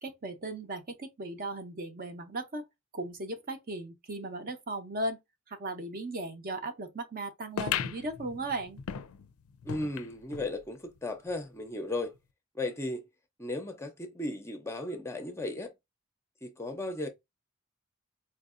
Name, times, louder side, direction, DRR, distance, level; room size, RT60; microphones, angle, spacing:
voice 1, 0.0-2.6 2.9-5.2 5.5-8.8, right 2 dB, 40° right, 0.7 m, -37 dB
sound 1, 7.6-10.5 11.0-11.1 11.3-11.4 12.1-12.2, left 8 dB, 80° left, 0.4 m, -37 dB
voice 2, 9.6-12.1 12.5-13.0 13.4-15.7 16.4-17.1, left 2 dB, 10° left, 0.6 m, -35 dB
4.5 x 2.5 x 2.4 m
head